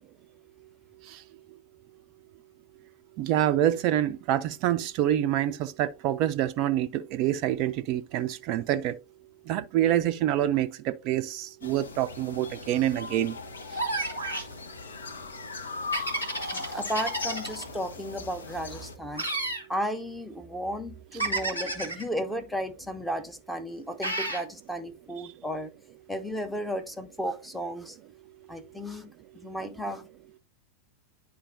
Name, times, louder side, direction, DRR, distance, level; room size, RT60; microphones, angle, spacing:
voice 1, 3.2-8.9 9.5-13.4, right 12 dB, 40° right, 0.3 m, -26 dB
sound 1, 11.6-19.0, left 4 dB, 70° left, 0.7 m, -39 dB
sound 2, 13.8-14.5 15.9-17.6 19.2-19.7 21.2-22.0 24.0-24.5, right 2 dB, 90° left, 1.5 m, -31 dB
voice 2, 16.4-19.3 19.7-25.7 26.1-28.0 28.5-29.1 29.4-30.0, equal, ahead, 0.7 m, -34 dB
10.0 x 4.3 x 2.6 m
figure-of-eight pair, 90°, 0 cm